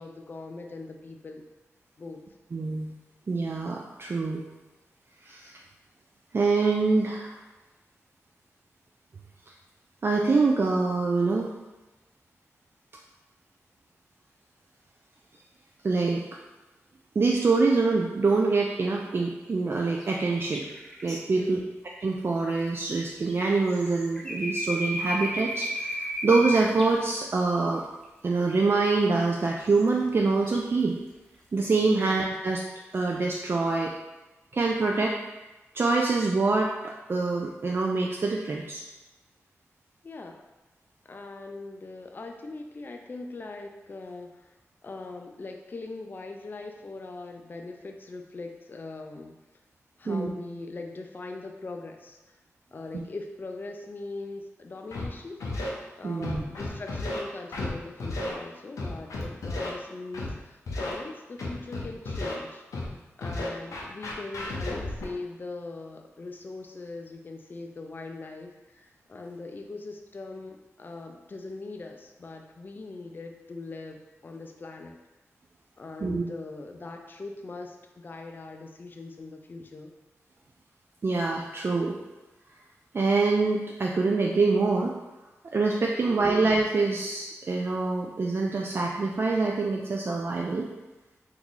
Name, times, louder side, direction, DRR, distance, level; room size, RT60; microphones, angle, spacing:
voice 1, 0.0-1.5 2.0-2.3 21.3-21.7 32.0-32.2 40.0-40.4 41.0-44.5 44.8-49.4 50.0-52.3 52.7-55.4 56.0-62.6 63.2-75.0 75.8-79.9 86.0-86.4, left 3 dB, 40° left, 3 dB, 0.3 m, -41 dB
voice 2, 2.5-2.9 3.3-4.4 5.3-5.6 6.3-7.4 10.0-11.5 15.8-16.2 17.2-20.7 21.0-21.6 22.0-27.8 28.2-30.9 31.5-32.6 32.9-33.9 34.5-35.1 35.7-38.8 50.1-50.3 56.0-56.4 76.0-76.2 81.0-82.0 82.9-85.0 85.5-90.7, right 3 dB, 45° right, -1 dB, 0.3 m, -25 dB
sound 1, 20.0-21.2 23.2-26.9 28.0-28.1 29.2-29.3 29.7-30.6, left 1 dB, 5° left, 0.8 m, -34 dB
Scratching (performance technique), 54.9-55.0 55.4-55.7 56.2-57.2 57.5-57.7 58.0-58.3 58.8-59.7 60.1-60.3 60.7-60.9 61.4-62.3 62.7-62.9 63.2-65.1, left 2 dB, 90° left, 0.6 m, -33 dB
3.0 x 2.3 x 3.8 m, 1.1 s
cardioid pair, 55°, 5 cm